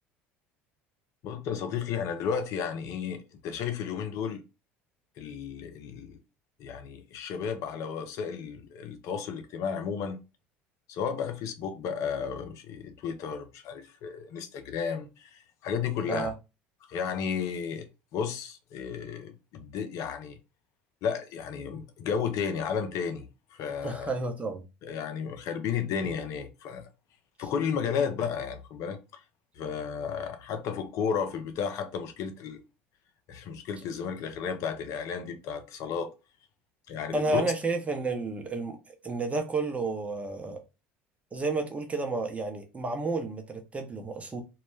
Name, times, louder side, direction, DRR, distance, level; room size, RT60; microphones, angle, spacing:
voice 1, 1.2-4.4 5.2-6.2 6.6-10.2 10.9-16.3 16.9-20.4 21.0-24.1 24.8-26.9 27.4-29.2 29.6-32.6 33.3-36.1 36.9-37.4, left 7 dB, 60° left, 0.5 m, -33 dB
voice 2, 23.8-24.6 37.1-40.6 41.3-44.4, right 3 dB, 20° right, 0.7 m, -31 dB
2.3 x 2.1 x 3.1 m
hypercardioid pair, 75°, 6 cm